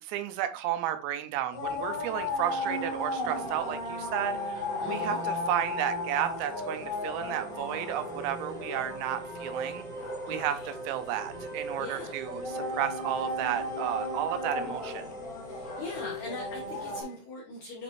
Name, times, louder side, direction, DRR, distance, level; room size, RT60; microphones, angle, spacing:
voice 1, 0.0-9.8 10.3-10.6 10.9-15.0, right 12 dB, 80° right, 9 dB, 2.8 m, -33 dB
sound 1, 1.5-17.0, left 2 dB, 50° left, 2.1 m, -36 dB
sound 2, 3.0-17.2, right 1 dB, ahead, 0.8 m, -42 dB
voice 2, 4.8-5.2 10.3-10.7 11.8-12.2 15.5-17.8, left 2 dB, 70° left, -2 dB, 2.0 m, -41 dB
10.0 x 4.2 x 3.1 m, 0.38 s
omnidirectional pair, 5.3 m